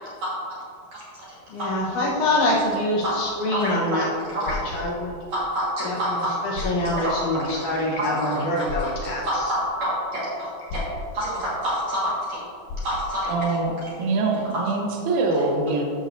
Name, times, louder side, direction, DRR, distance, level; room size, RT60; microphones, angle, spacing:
voice 1, 0.9-1.3 1.6-1.7 3.0-3.1 3.5-3.7 4.3-4.8 5.3-6.3 6.9-7.1 8.0-10.8 11.1-12.4 12.8-14.2 15.4-15.5, equal, 55° right, -9 dB, 2.2 m, -28 dB
voice 2, 1.5-5.1 5.8-9.6, left 1 dB, 70° left, -3 dB, 2.0 m, -25 dB
sound 1, 4.2-4.8 6.1-6.2 6.5-6.9 8.7-9.0 10.7-11.1 12.7-13.1, left 3 dB, 90° left, 3.4 m, -32 dB
voice 3, 13.3-13.7 14.0-15.8, right 3 dB, 80° right, 0 dB, 1.7 m, -23 dB
13.5 x 6.5 x 2.5 m, 2.4 s
omnidirectional pair, 4.7 m